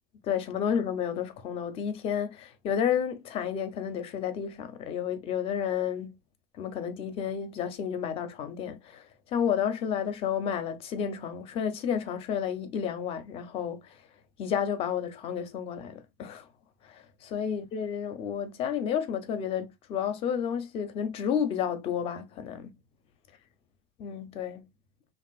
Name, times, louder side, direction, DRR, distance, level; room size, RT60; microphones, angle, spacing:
voice 1, 0.2-6.2 6.6-14.0 14.4-16.5 16.8-22.8 24.0-24.7, left 8 dB, 30° left, 0.5 m, -31 dB
3.3 x 2.4 x 2.3 m
cardioid pair, 175°, 19 cm